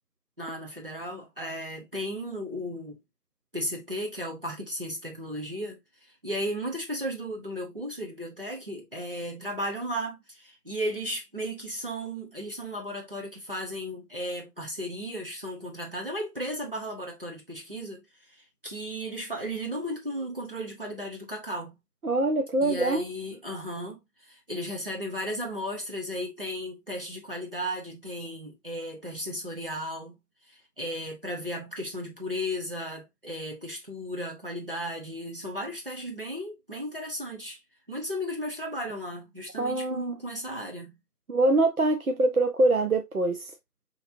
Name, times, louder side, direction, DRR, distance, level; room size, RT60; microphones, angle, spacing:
voice 1, 0.4-3.0 3.5-5.8 6.2-18.0 18.6-21.7 22.6-30.2 30.8-37.6 37.9-41.0, equal, 35° right, 1.0 m, -35 dB
voice 2, 22.0-23.1 39.6-40.2 41.3-43.5, right 2 dB, 65° right, 0.7 m, -24 dB
5.2 x 3.3 x 2.6 m
figure-of-eight pair, 180°, 48 cm